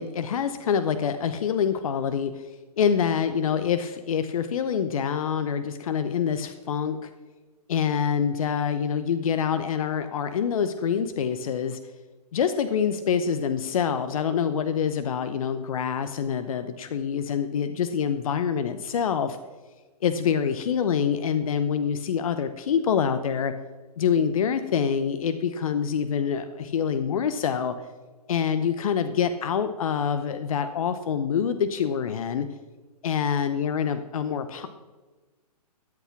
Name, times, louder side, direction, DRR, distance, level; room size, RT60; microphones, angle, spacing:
voice 1, 0.0-2.5 2.8-7.1 7.7-11.8 12.3-19.4 20.0-23.5 24.0-27.7 28.3-32.5 33.0-34.7, left 7 dB, 60° left, 10 dB, 0.8 m, -26 dB
13.0 x 8.4 x 5.9 m, 1.3 s
hypercardioid pair, 130°, 21 cm